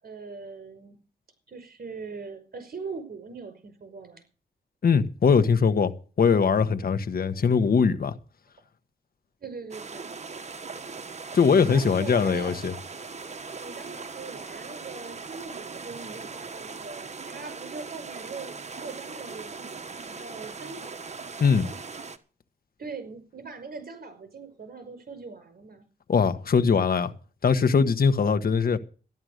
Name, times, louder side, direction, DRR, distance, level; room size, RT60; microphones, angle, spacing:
voice 1, 0.0-1.0 1.5-4.2 9.4-10.0 11.3-12.6 13.6-18.5 18.8-20.9 22.8-25.9, right 4 dB, 55° right, 5.3 m, -41 dB
voice 2, 4.8-8.1 11.3-12.7 21.4-21.7 26.1-27.1 27.4-28.8, left 5 dB, 60° left, 1.3 m, -21 dB
sound 1, 9.7-22.2, right 4 dB, 40° right, 1.4 m, -40 dB
13.5 x 11.0 x 6.6 m
cardioid pair, 70°, 18 cm